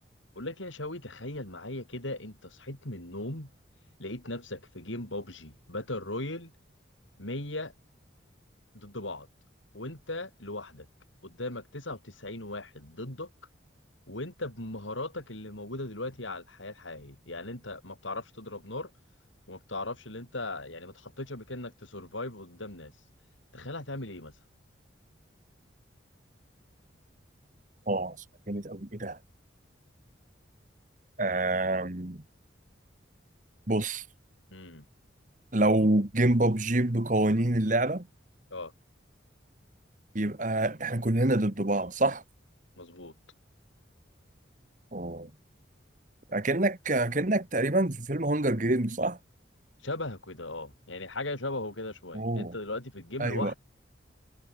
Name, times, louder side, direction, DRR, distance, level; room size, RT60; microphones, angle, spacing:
voice 1, 0.4-3.5 4.0-6.5 7.2-7.7 8.7-9.3 9.7-10.9 11.2-13.3 14.1-18.9 19.5-22.9 23.5-24.3 34.5-34.9 38.5-38.7 42.8-43.1 49.8-53.6, left 2 dB, 85° left, 5.7 m, -38 dB
voice 2, 27.9-28.2 28.5-29.2 31.2-32.2 33.7-34.0 35.5-38.1 40.1-42.2 44.9-45.3 46.3-49.2 52.1-52.5 53.2-53.5, right 2 dB, 40° right, 1.5 m, -27 dB
head